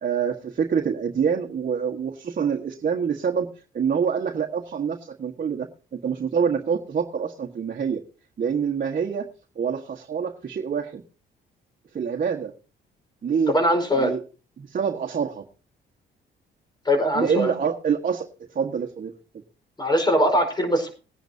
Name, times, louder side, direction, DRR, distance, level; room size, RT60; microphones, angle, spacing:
voice 1, 0.0-3.5 3.7-8.0 8.4-9.3 9.5-11.0 11.9-12.5 13.2-13.5 14.0-14.2 14.6-15.4 17.1-18.3 18.5-19.1, right 7 dB, 45° right, 1 dB, 1.6 m, -26 dB
voice 2, 13.5-14.1 16.8-17.5 19.8-20.9, equal, 20° left, 6 dB, 4.8 m, -21 dB
20.5 x 10.0 x 2.8 m, 0.34 s
cardioid pair, 90°, 20 cm